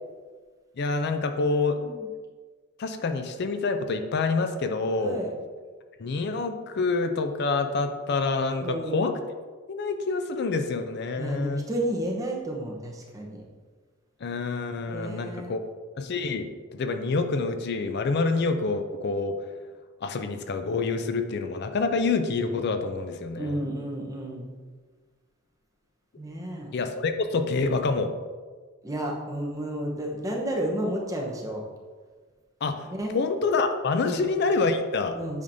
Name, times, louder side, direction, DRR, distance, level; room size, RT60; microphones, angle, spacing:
voice 1, 0.8-1.8 2.8-5.2 6.0-9.2 9.7-11.6 14.2-15.6 16.0-19.4 20.0-23.7 26.7-28.1 32.6-32.9 33.1-35.2, left 3 dB, 55° left, 7 dB, 0.4 m, -27 dB
voice 2, 5.0-5.3 8.6-9.0 11.2-13.4 14.9-15.5 23.3-24.5 26.2-26.7 28.8-31.6 32.9-33.1 34.0-34.2 35.1-35.4, right 1 dB, 15° right, -1 dB, 0.9 m, -31 dB
8.5 x 5.2 x 2.7 m, 1.5 s
head